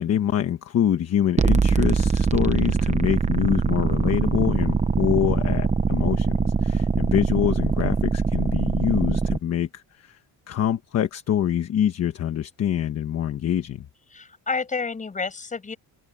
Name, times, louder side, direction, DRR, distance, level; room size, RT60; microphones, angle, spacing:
voice 1, 0.0-10.2 10.5-13.9, left 10 dB, 40° left, 1.2 m, -25 dB
sound 1, 1.4-9.4, right 5 dB, 20° right, 0.8 m, -22 dB
voice 2, 14.1-15.8, left 4 dB, 20° left, 5.9 m, -30 dB
open air
cardioid pair, 180°, 40 cm